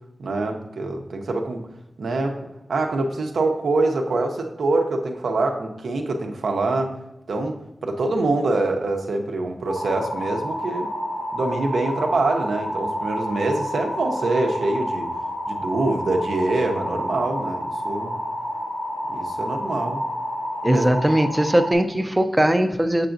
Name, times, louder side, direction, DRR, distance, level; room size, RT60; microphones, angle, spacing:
voice 1, 0.2-1.7 2.0-6.9 7.3-10.9 11.3-15.1 15.5-18.2 19.1-20.0 20.6-20.8, right 2 dB, 85° right, 3 dB, 0.6 m, -25 dB
sound 1, 9.7-21.7, equal, 85° left, 1.2 m, -29 dB
voice 2, 20.6-23.1, right 1 dB, 15° right, 7 dB, 0.4 m, -20 dB
6.8 x 6.7 x 2.5 m, 0.92 s
wide cardioid pair, 90°, 0 cm